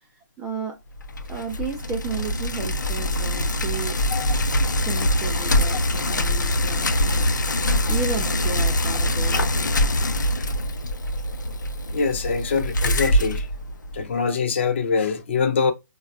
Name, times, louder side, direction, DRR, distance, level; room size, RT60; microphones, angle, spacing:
voice 1, 0.4-0.8 1.2-4.0 4.6-7.3 7.6-10.0, right 5 dB, 10° right, 0.3 m, -34 dB
Bicycle, 1.0-14.1, left 1 dB, 75° left, 0.6 m, -23 dB
voice 2, 11.9-13.5 13.9-15.7, left 5 dB, 40° left, 0.7 m, -24 dB
3.8 x 2.3 x 2.3 m
figure-of-eight pair, 145°, 10 cm